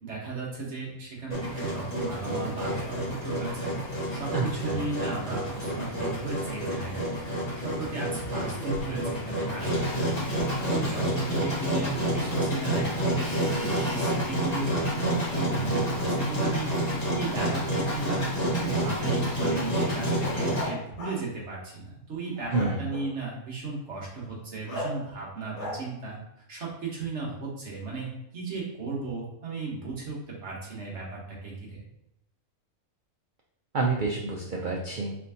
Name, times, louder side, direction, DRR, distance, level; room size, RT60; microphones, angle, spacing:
voice 1, 0.0-3.7 4.1-26.2 26.5-31.8, right 3 dB, 55° right, -4 dB, 1.3 m, -36 dB
Engine, 1.3-20.7, equal, 30° left, 1.4 m, -29 dB
voice 2, 4.3-4.8 22.5-22.8 33.7-35.2, right 3 dB, 75° right, -1 dB, 0.4 m, -28 dB
sound 1, 19.6-21.3 22.4-23.2 24.7-25.1 25.5-25.9, left 1 dB, 65° left, 1.6 m, -37 dB
4.3 x 3.4 x 2.8 m, 0.82 s
omnidirectional pair, 1.5 m